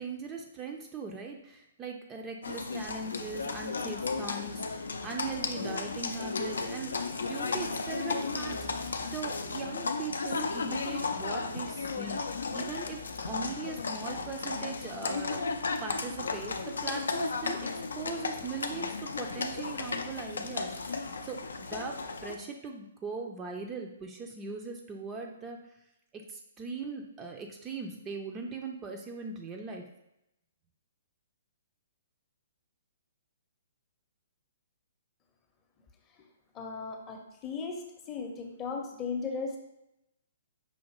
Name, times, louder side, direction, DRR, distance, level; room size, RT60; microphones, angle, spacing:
voice 1, 0.0-13.0 13.3-17.7 18.0-25.6 26.1-29.8, right 4 dB, 20° right, 2 dB, 0.4 m, -40 dB
Livestock farm animals working animals, 2.4-22.3, left 4 dB, 75° left, 0.4 m, -34 dB
voice 2, 36.5-39.6, left 4 dB, 25° left, 2 dB, 0.7 m, -36 dB
5.6 x 2.5 x 2.9 m, 0.84 s
figure-of-eight pair, 125°, 0 cm